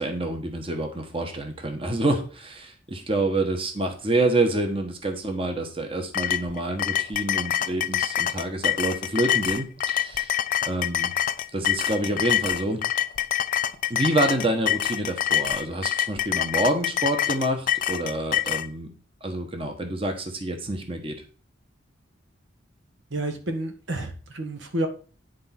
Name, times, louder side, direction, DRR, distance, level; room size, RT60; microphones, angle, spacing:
voice 1, 0.0-10.3 10.7-11.1 11.5-12.8 13.9-18.9 19.2-21.1, right 2 dB, 30° right, 4 dB, 1.2 m, -27 dB
sound 1, 6.1-18.7, left 11 dB, 45° left, 0.4 m, -26 dB
voice 2, 23.1-24.9, right 1 dB, 70° right, 6 dB, 1.5 m, -30 dB
10.5 x 4.1 x 5.9 m, 0.40 s
head